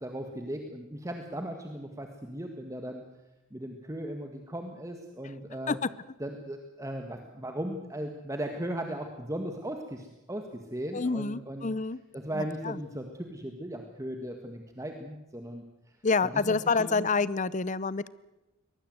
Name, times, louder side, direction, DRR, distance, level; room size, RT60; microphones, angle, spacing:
voice 1, 0.0-3.0 3.5-5.8 6.2-11.7 12.1-15.6 16.2-17.1, right 1 dB, 15° right, 4 dB, 1.7 m, -37 dB
voice 2, 10.9-12.0 12.3-12.8 16.0-18.1, left 4 dB, 35° left, 19 dB, 0.7 m, -28 dB
23.0 x 19.5 x 7.9 m, 0.99 s
head